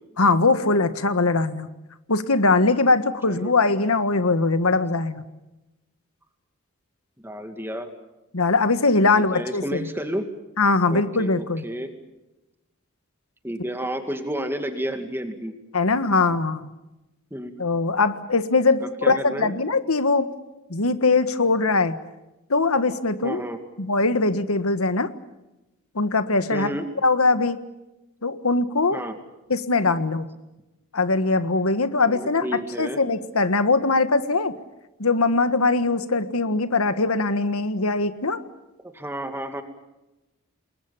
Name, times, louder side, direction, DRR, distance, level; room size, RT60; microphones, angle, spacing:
voice 1, 0.2-1.7 2.1-5.2 8.3-9.9 10.6-11.6 15.7-16.7 17.6-20.3 20.7-22.0 22.5-23.4 23.8-25.1 25.9-26.7 27.0-27.6 28.2-29.0 29.5-30.2 30.9-34.5 35.0-38.4, left 3 dB, 90° left, 11 dB, 1.6 m, -21 dB
voice 2, 7.2-7.9 9.1-10.3 10.9-11.9 13.4-15.5 17.3-17.5 18.8-19.5 23.2-23.6 26.5-26.9 28.9-29.2 32.1-33.0 38.9-39.6, equal, 10° right, 7 dB, 2.3 m, -31 dB
28.5 x 21.5 x 7.2 m, 0.99 s
head